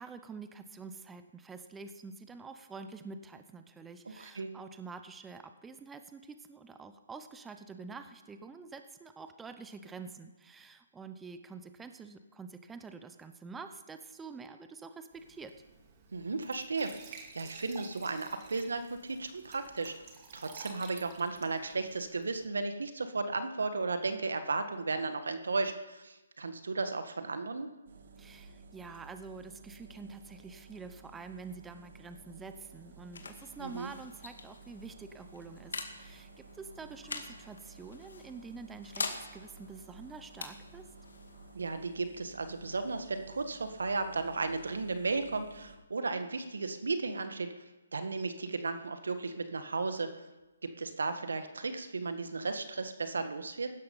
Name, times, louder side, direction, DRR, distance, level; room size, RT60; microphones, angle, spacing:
voice 1, 0.0-15.5 28.2-40.9, right 4 dB, 10° right, 9 dB, 0.7 m, -47 dB
voice 2, 4.0-4.5 16.1-19.9 20.3-27.7 33.6-33.9 41.5-47.6 47.9-50.1 50.6-53.7, right 3 dB, 80° right, 8 dB, 1.7 m, -35 dB
Glass / Trickle dribble / Fill (with liquid), 15.1-22.5, right 5 dB, 30° right, 2.3 m, -53 dB
sound 1, 27.9-45.8, right 3 dB, 55° right, 2.0 m, -54 dB
sound 2, 32.5-43.7, left 4 dB, 75° left, 2.2 m, -46 dB
16.0 x 12.5 x 5.6 m, 1.1 s
hypercardioid pair, 150°, 0 cm